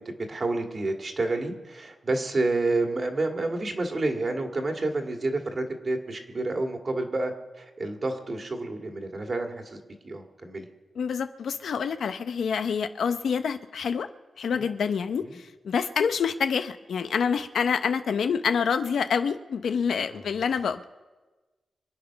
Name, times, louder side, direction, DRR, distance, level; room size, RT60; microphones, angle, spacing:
voice 1, 0.3-10.7 14.5-14.7 15.2-15.4 20.1-20.3, right 2 dB, 40° right, 3 dB, 1.9 m, -29 dB
voice 2, 11.0-14.1 14.4-20.9, left 6 dB, 80° left, 9 dB, 0.7 m, -27 dB
25.5 x 8.9 x 5.8 m, 1.2 s
wide cardioid pair, 115°, 0 cm